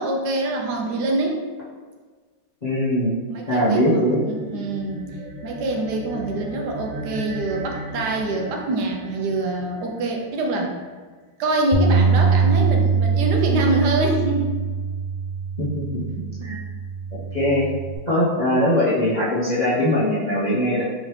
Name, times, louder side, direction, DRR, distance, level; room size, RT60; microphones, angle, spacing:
voice 1, 0.0-1.4 3.3-5.1 5.4-10.7 11.4-14.6 16.4-16.5, right 2 dB, 70° right, 1 dB, 1.0 m, -25 dB
voice 2, 2.6-3.1 3.5-4.2 15.6-16.6 17.3-17.7 18.1-20.8, left 1 dB, 55° left, -11 dB, 0.4 m, -21 dB
sound 1, 4.1-10.8, right 1 dB, 90° right, 1.4 m, -36 dB
Bass guitar, 11.7-18.0, right 5 dB, 85° left, 1.4 m, -22 dB
3.7 x 3.2 x 3.1 m, 1.4 s
omnidirectional pair, 2.1 m